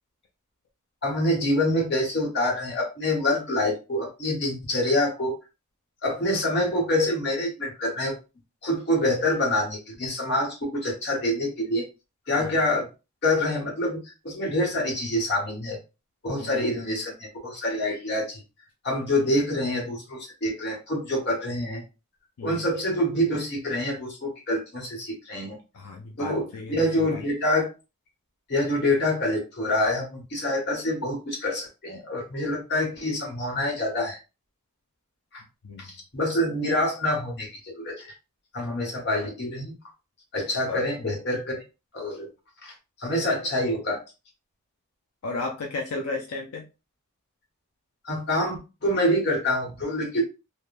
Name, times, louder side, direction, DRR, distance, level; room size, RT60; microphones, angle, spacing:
voice 1, 1.0-5.3 6.0-8.2 8.6-11.9 12.3-12.9 13.2-15.8 16.2-18.4 18.8-21.8 22.4-25.6 26.2-27.7 28.5-34.2 35.3-35.4 35.8-38.1 38.5-39.7 40.3-41.6 41.9-42.3 42.6-42.7 43.0-44.0 48.0-50.2, left 1 dB, 50° left, -1 dB, 1.2 m, -26 dB
voice 2, 16.4-16.7 22.4-22.6 25.7-27.1 35.6-35.8 40.7-40.9 45.2-46.6, left 3 dB, 80° left, 2 dB, 0.5 m, -33 dB
3.5 x 2.1 x 2.5 m, 0.29 s
head